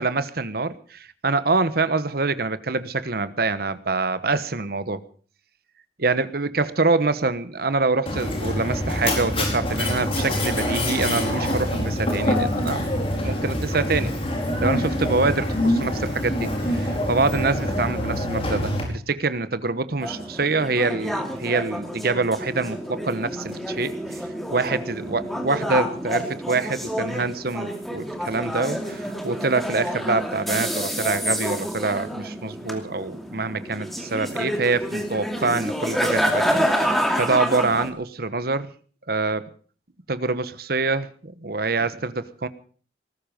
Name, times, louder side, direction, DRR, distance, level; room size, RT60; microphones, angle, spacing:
voice 1, 0.0-5.0 6.0-12.9 13.2-14.2 14.6-24.2 24.5-38.7 39.1-39.4 40.1-42.5, right 3 dB, 55° right, 14 dB, 1.1 m, -25 dB
Mechanisms, 8.1-18.8, left 1 dB, 35° left, 4.7 m, -25 dB
sound 1, 20.0-37.9, equal, ahead, 2.6 m, -28 dB
19.0 x 14.0 x 5.2 m, 0.43 s
head